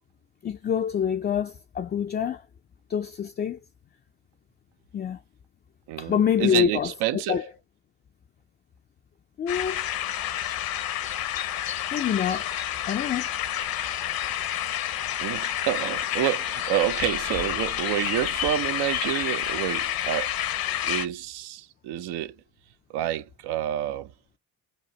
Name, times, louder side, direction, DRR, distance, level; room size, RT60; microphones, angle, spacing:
voice 1, 0.4-2.4 2.9-3.6 4.9-5.2 6.0-7.4 9.4-9.9 11.9-12.5 12.9-13.3, left 8 dB, 25° left, 0.3 m, -26 dB
voice 2, 5.9-7.4 12.3-12.4 15.2-20.3 20.8-22.4 22.9-24.1, right 12 dB, 80° right, 0.6 m, -28 dB
sound 1, 9.5-21.1, left 11 dB, 60° left, 0.7 m, -29 dB
5.1 x 2.1 x 2.9 m
supercardioid pair, 80°, 40 cm